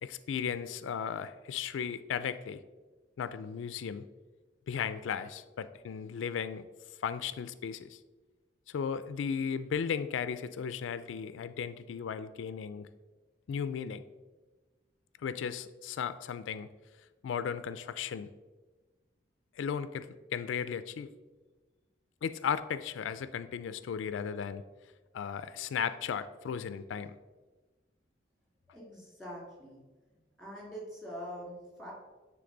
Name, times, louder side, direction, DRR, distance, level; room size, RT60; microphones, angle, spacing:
voice 1, 0.0-2.6 3.2-4.0 4.7-6.7 7.0-8.0 8.7-12.9 13.5-14.0 15.2-16.7 17.2-18.3 19.5-21.1 22.2-24.6 25.1-27.2, left 7 dB, 85° left, 13 dB, 0.3 m, -35 dB
voice 2, 28.7-29.8 30.4-31.9, equal, ahead, -4 dB, 2.2 m, -44 dB
9.2 x 3.6 x 3.9 m, 1.3 s
head